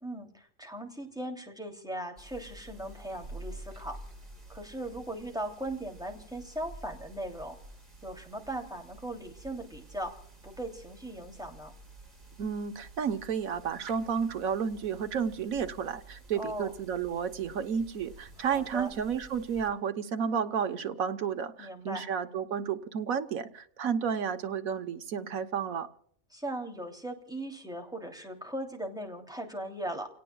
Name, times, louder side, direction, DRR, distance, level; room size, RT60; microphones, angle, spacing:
voice 1, 0.0-4.0 4.5-7.6 8.0-10.1 10.4-11.7 16.4-16.7 18.4-18.9 21.6-22.0 26.3-30.1, right 1 dB, 5° right, 2 dB, 2.8 m, -38 dB
sound 1, 2.2-19.7, right 2 dB, 45° right, 4.9 m, -50 dB
voice 2, 12.4-25.9, right 7 dB, 85° right, 7 dB, 1.5 m, -32 dB
30.0 x 18.0 x 2.3 m, 0.64 s
omnidirectional pair, 1.4 m